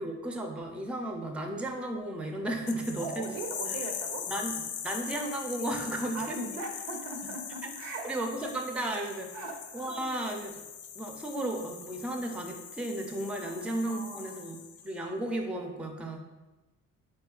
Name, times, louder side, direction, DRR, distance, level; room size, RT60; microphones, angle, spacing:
voice 1, 0.0-3.3 4.3-6.4 7.6-7.7 8.0-9.4 9.7-10.6 11.0-14.6 14.8-16.2, right 1 dB, 5° right, 3 dB, 0.4 m, -34 dB
sound 1, 2.7-15.0, left 8 dB, 70° left, 0.5 m, -41 dB
voice 2, 3.0-4.3 6.0-8.1 9.3-10.1 13.3-14.4, right 3 dB, 85° right, 3 dB, 0.7 m, -40 dB
4.3 x 3.1 x 2.3 m, 1.1 s
cardioid pair, 90°, 31 cm